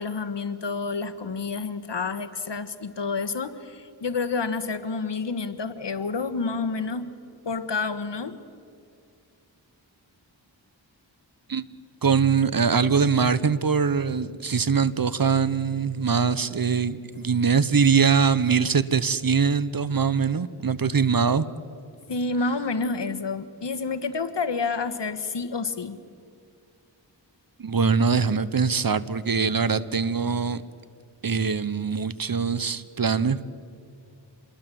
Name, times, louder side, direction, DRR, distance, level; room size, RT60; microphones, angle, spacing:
voice 1, 0.0-7.1 7.4-8.4 17.1-17.2 22.1-26.0, left 4 dB, 65° left, 11 dB, 1.5 m, -29 dB
voice 2, 12.0-21.5 27.6-30.6 31.2-33.5, right 6 dB, 50° right, 16 dB, 1.0 m, -22 dB
27.0 x 22.0 x 7.7 m, 2.3 s
cardioid pair, 50°, 45 cm